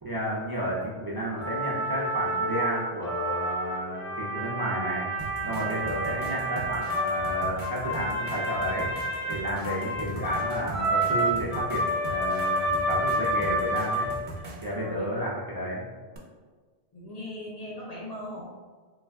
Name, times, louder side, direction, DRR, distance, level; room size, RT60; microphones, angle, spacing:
voice 1, 0.0-5.1 5.4-8.9 9.3-14.1 14.6-15.8, equal, 35° right, -6 dB, 0.4 m, -32 dB
sound 1, 1.4-14.4, right 1 dB, 85° left, 1.1 m, -29 dB
sound 2, 5.2-14.8 16.1-16.2, right 2 dB, 55° right, 0.7 m, -41 dB
voice 2, 5.4-5.7 14.7-15.1 16.9-18.4, left 1 dB, 50° left, -4 dB, 0.5 m, -39 dB
3.2 x 2.2 x 3.5 m, 1.5 s
omnidirectional pair, 1.1 m